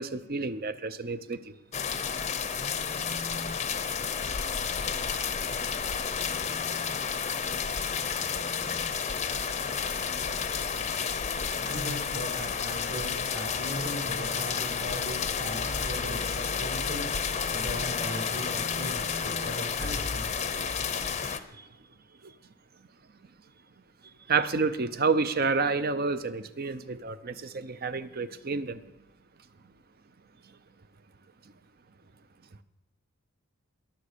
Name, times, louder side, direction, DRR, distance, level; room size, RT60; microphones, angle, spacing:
voice 1, 0.0-1.4 24.3-28.8, right 4 dB, 45° right, 0.7 m, -29 dB
sound 1, 1.7-21.4, left 6 dB, 30° left, 0.7 m, -31 dB
voice 2, 11.3-17.1 17.5-20.3, equal, 60° right, 5.4 m, -39 dB
21.0 x 7.2 x 6.7 m
head